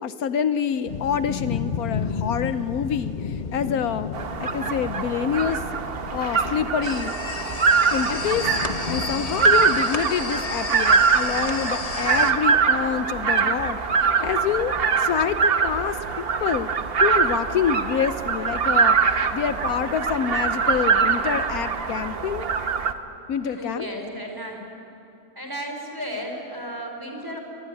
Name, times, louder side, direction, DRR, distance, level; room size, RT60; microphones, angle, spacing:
voice 1, 0.0-4.1 4.4-5.6 6.1-7.1 7.9-8.5 8.9-16.7 17.0-22.5 23.3-23.9, left 8 dB, 75° left, 12 dB, 1.2 m, -27 dB
sound 1, 0.9-9.9, left 6 dB, 50° left, 0.5 m, -33 dB
sound 2, 4.1-22.9, right 5 dB, 45° right, 1.1 m, -23 dB
sound 3, 6.8-12.3, left 3 dB, 25° left, 1.1 m, -32 dB
voice 2, 23.4-24.7 25.4-27.4, equal, 15° right, 2 dB, 3.9 m, -34 dB
23.0 x 20.0 x 9.5 m, 2.7 s
omnidirectional pair, 1.6 m